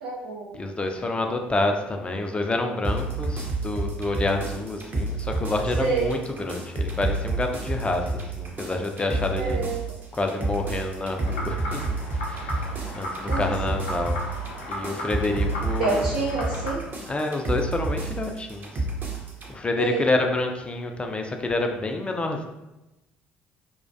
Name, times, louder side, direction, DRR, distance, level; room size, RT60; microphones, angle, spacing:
voice 1, 0.0-0.6 5.8-6.1 9.4-9.8 13.3-13.5 15.8-16.9 19.8-20.0, right 4 dB, 85° right, -5 dB, 0.3 m, -27 dB
voice 2, 0.5-9.6 10.1-14.2 14.7-16.1 17.1-18.9 19.5-22.4, left 2 dB, 20° left, 4 dB, 0.3 m, -28 dB
sound 1, 2.8-19.5, right 2 dB, 40° right, 0.6 m, -30 dB
sound 2, 11.2-16.7, left 1 dB, 85° left, 0.5 m, -35 dB
2.2 x 2.1 x 2.6 m, 0.96 s
hypercardioid pair, 55°, 5 cm